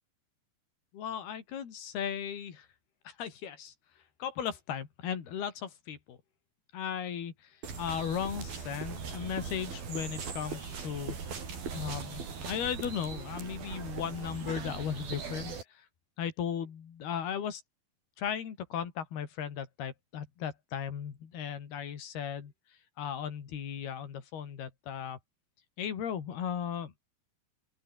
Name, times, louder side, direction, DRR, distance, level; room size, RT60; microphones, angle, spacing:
voice 1, 0.9-2.7 3.0-3.7 4.2-6.2 6.7-7.3 7.8-11.2 11.7-15.6 16.2-17.6 18.2-22.5 23.0-25.2 25.8-26.9, left 8 dB, 80° left, 5.0 m, -36 dB
sound 1, 7.6-15.6, right 5 dB, 70° right, 6.8 m, -40 dB
open air
omnidirectional pair, 4.4 m